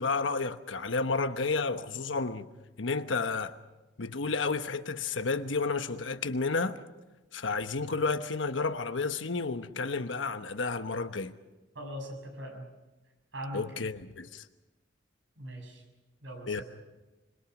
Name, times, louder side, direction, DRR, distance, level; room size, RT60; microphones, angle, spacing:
voice 1, 0.0-2.5 2.8-3.5 4.0-6.8 7.3-11.3 13.5-14.4 16.5-16.6, left 4 dB, 85° left, 1.1 m, -31 dB
voice 2, 11.7-12.7 13.3-13.6 15.4-15.8 16.2-16.6, equal, 75° right, 6.6 m, -40 dB
26.0 x 22.0 x 6.0 m
head